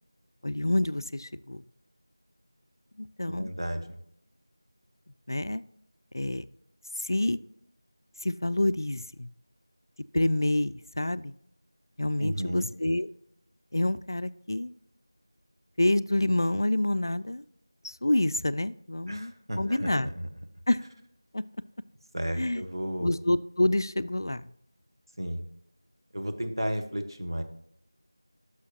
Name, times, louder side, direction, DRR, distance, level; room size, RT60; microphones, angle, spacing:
voice 1, 0.4-1.6 3.0-3.5 5.3-5.6 6.1-6.4 7.0-7.4 8.2-9.3 10.1-11.3 12.0-13.1 13.7-14.7 15.8-17.4 17.8-20.1 20.7-20.8 21.3-21.4 22.4-22.6 23.0-24.4, left 1 dB, 60° left, 15 dB, 0.4 m, -27 dB
voice 2, 3.2-3.8 12.2-12.7 19.1-20.3 22.1-23.1 25.2-25.4 26.1-27.4, equal, 80° right, 5 dB, 1.2 m, -33 dB
11.0 x 6.3 x 2.9 m, 0.73 s
figure-of-eight pair, 175°, 2 cm